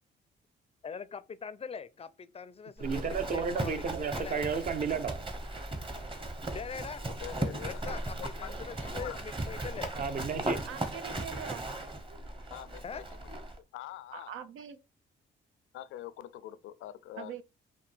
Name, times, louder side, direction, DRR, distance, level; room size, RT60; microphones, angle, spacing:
voice 1, 0.8-4.4 6.5-7.0 7.6-9.9 12.8-13.0, left 6 dB, 30° left, 0.4 m, -42 dB
Livestock farm animals working animals, 2.8-13.6, right 2 dB, 25° right, 1.1 m, -37 dB
voice 2, 2.8-5.3 10.0-10.6, right 5 dB, 40° right, 0.7 m, -33 dB
voice 3, 7.1-7.8 8.2-9.2 12.5-13.1 13.7-14.3 15.7-17.4, left 13 dB, 85° left, 0.5 m, -44 dB
voice 4, 10.7-11.7 14.1-14.8 17.2-17.4, right 8 dB, 85° right, 0.7 m, -42 dB
5.1 x 2.7 x 3.4 m
cardioid pair, 90°, 20 cm